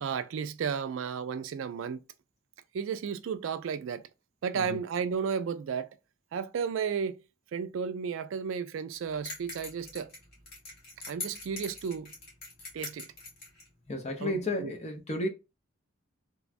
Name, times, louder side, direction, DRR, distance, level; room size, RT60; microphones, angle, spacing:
voice 1, 0.0-2.0 2.7-4.1 4.4-5.9 6.3-7.2 7.5-10.1 11.1-12.1 12.7-13.1 14.2-14.7, right 6 dB, 65° right, 0.3 m, -33 dB
sound 1, 9.3-13.7, left 3 dB, 50° left, 1.5 m, -43 dB
voice 2, 13.9-15.3, left 1 dB, 30° left, 0.6 m, -33 dB
3.0 x 2.3 x 2.4 m
head